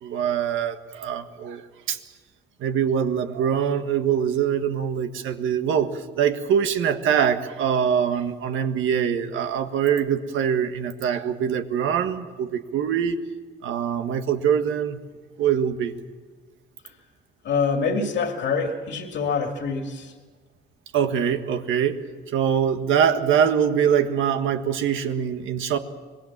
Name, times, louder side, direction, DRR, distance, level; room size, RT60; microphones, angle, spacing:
voice 1, 0.0-1.6 1.9-2.0 2.6-5.9 6.2-13.2 13.6-15.0 15.4-16.0 20.9-22.0 22.3-25.8, right 8 dB, 80° right, 7 dB, 1.6 m, -23 dB
voice 2, 17.4-20.1, left 5 dB, 65° left, 3 dB, 2.5 m, -25 dB
25.5 x 20.0 x 7.4 m, 1.5 s
cardioid pair, 90°, 20 cm